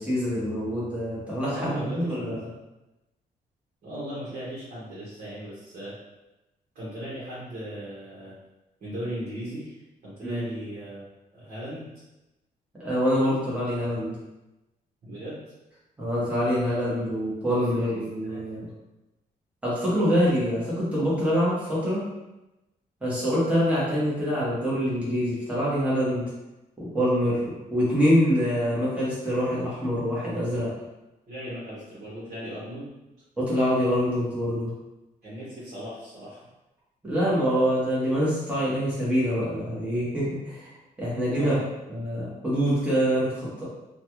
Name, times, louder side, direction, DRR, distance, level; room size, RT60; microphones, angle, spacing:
voice 1, 0.0-2.4 10.2-10.4 12.8-14.2 16.0-18.7 19.6-22.1 23.0-26.2 26.8-30.7 33.4-34.7 37.0-40.7 41.0-41.5 41.9-43.6, equal, 10° right, -9 dB, 1.1 m, -25 dB
voice 2, 1.5-2.3 3.8-5.9 6.7-8.3 8.8-11.1 11.3-11.9 15.0-15.4 17.7-18.4 31.3-32.9 35.2-36.5 41.3-41.7, equal, 55° right, -9 dB, 1.1 m, -37 dB
3.1 x 2.3 x 3.0 m, 0.97 s
cardioid pair, 165°, 16 cm